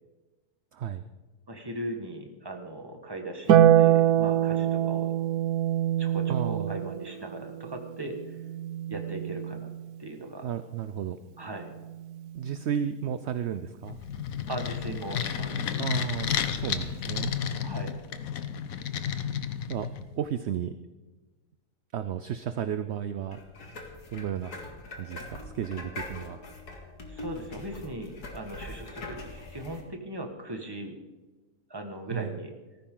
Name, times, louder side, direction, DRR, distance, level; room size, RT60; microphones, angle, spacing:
voice 1, 0.7-1.0 6.3-6.8 10.4-11.2 12.3-14.0 15.8-17.3 19.7-19.9 20.2-20.7 21.9-23.4 24.1-24.6 24.9-26.4 32.1-32.4, right 9 dB, 60° right, 11 dB, 0.7 m, -33 dB
voice 2, 1.5-5.1 6.0-8.2 8.9-9.7 10.0-10.5 11.4-11.7 14.5-15.8 17.6-17.9 27.1-31.0 31.7-32.5, right 1 dB, 15° right, 3 dB, 1.7 m, -38 dB
Harp, 3.5-10.0 11.6-12.6, right 11 dB, 85° right, 1.3 m, -25 dB
sound 1, 13.8-20.2, left 8 dB, 65° left, 1.2 m, -32 dB
sound 2, 23.3-29.8, left 2 dB, 80° left, 2.5 m, -42 dB
18.0 x 14.5 x 3.9 m, 1.2 s
omnidirectional pair, 1.6 m